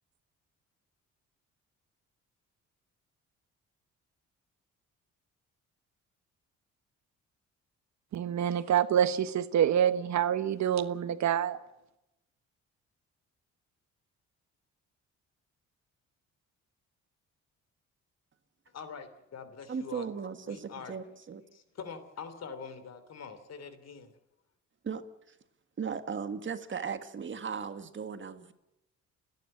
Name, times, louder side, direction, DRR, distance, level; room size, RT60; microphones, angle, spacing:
voice 1, 8.1-11.6, right 9 dB, 65° right, 13 dB, 1.3 m, -27 dB
voice 2, 18.7-20.1 20.5-21.1 21.5-24.1, left 6 dB, 60° left, 11 dB, 3.0 m, -44 dB
voice 3, 19.7-21.4 24.8-25.0 25.8-28.5, right 6 dB, 40° right, 10 dB, 1.7 m, -37 dB
30.0 x 10.5 x 8.7 m, 0.89 s
cardioid pair, 90°, 30 cm